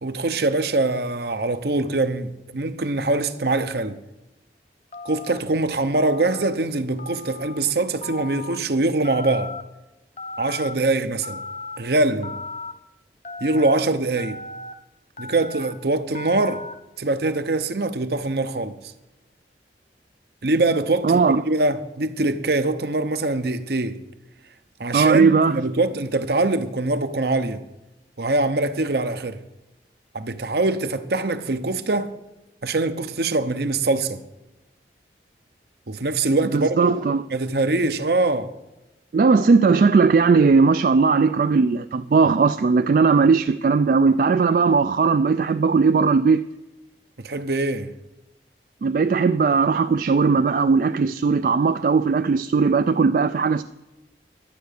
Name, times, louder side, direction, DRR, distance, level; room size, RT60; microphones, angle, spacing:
voice 1, 0.0-4.0 5.0-9.5 10.4-11.4 11.8-12.3 13.4-14.4 15.2-16.6 17.0-18.8 20.4-24.0 24.8-27.6 28.2-29.4 30.1-32.1 32.6-34.2 35.9-37.0 37.3-38.5 47.2-47.9, right 2 dB, 65° right, 0.8 m, -23 dB
Telephone, 4.9-5.4 5.9-6.5 7.0-7.6 8.0-8.6 9.0-9.6 10.2-10.7 11.2-11.8 12.2-12.7 13.2-13.8 14.2-14.7 15.2-15.7 16.1-16.7, left 3 dB, 35° left, 0.6 m, -36 dB
voice 2, 21.0-21.4 24.9-25.7 36.5-37.2 39.1-46.4 48.8-53.6, right 4 dB, 50° right, 0.3 m, -18 dB
11.5 x 9.1 x 6.6 m
head